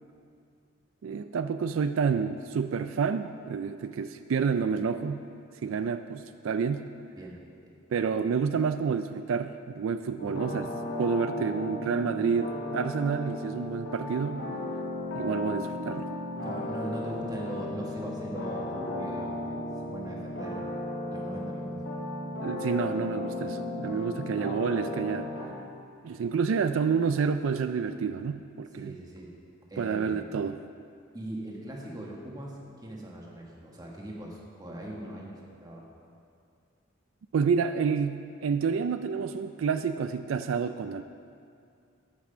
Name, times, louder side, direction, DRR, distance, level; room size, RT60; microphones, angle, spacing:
voice 1, 1.0-5.2 5.6-6.8 7.9-10.7 11.0-14.4 15.1-16.1 22.4-25.5 26.0-29.0 29.8-30.6 37.3-41.0, right 6 dB, 85° right, 10 dB, 0.4 m, -29 dB
sound 1, 10.2-25.4, left 1 dB, 75° left, 2.1 m, -35 dB
voice 2, 16.4-20.6 21.1-21.8 28.7-29.3 29.7-30.3 31.1-35.9, right 1 dB, 20° right, -2 dB, 1.5 m, -40 dB
13.5 x 5.9 x 5.5 m, 2.4 s
head